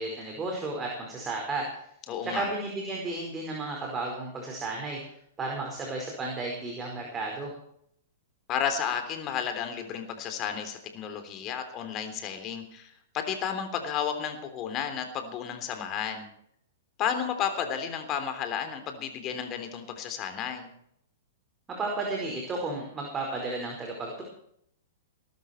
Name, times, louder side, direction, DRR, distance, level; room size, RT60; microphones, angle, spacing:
voice 1, 0.0-1.7 2.2-5.0 5.4-7.5 21.8-24.2, right 2 dB, 20° right, 0 dB, 4.9 m, -33 dB
voice 2, 2.1-2.5 8.5-16.3 17.0-20.7, left 8 dB, 35° left, 7 dB, 3.4 m, -32 dB
20.0 x 12.5 x 4.5 m, 0.70 s
hypercardioid pair, 110°, 0 cm